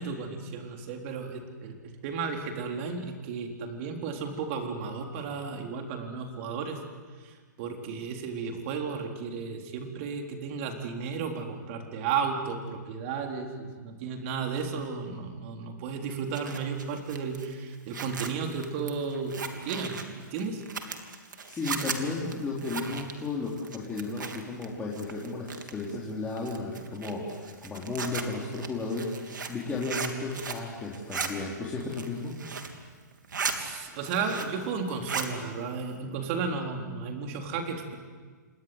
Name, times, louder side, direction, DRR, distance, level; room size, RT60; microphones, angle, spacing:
voice 1, 0.0-1.8 2.0-6.8 7.2-19.4 19.6-20.6 33.5-38.0, right 5 dB, 40° right, 3 dB, 4.1 m, -34 dB
Zipper (clothing), 16.1-24.7 24.9-25.9 26.4-30.7 30.9-31.3 31.8-32.8 33.1-33.6 33.9-34.6 34.9-35.3, right 5 dB, 85° right, 3.1 m, -37 dB
voice 2, 21.4-32.3, left 3 dB, 15° left, -5 dB, 3.9 m, -34 dB
28.0 x 21.0 x 8.2 m, 1.5 s
hypercardioid pair, 135°, 10 cm